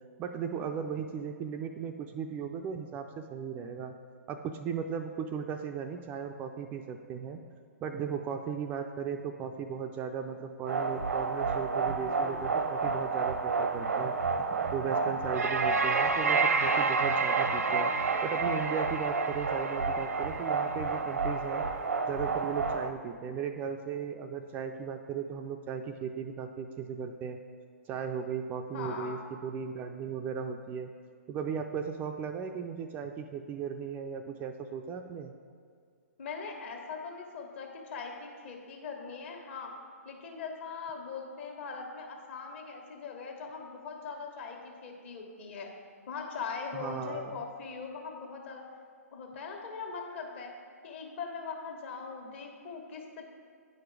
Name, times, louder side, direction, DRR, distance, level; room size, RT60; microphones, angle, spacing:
voice 1, 0.2-3.9 4.3-7.4 7.8-14.1 14.7-17.9 18.2-21.6 22.0-27.4 27.9-30.9 31.3-35.3 46.7-47.4, right 7 dB, 20° right, 5 dB, 0.3 m, -36 dB
sound 1, 10.7-22.9, right 4 dB, 80° right, 0.7 m, -29 dB
voice 2, 28.7-29.2 36.2-39.7 40.0-45.7 46.1-48.6 49.1-50.5 50.8-53.2, left 5 dB, 50° left, 2 dB, 1.4 m, -41 dB
9.4 x 5.0 x 4.7 m, 2.2 s
hypercardioid pair, 130°, 8 cm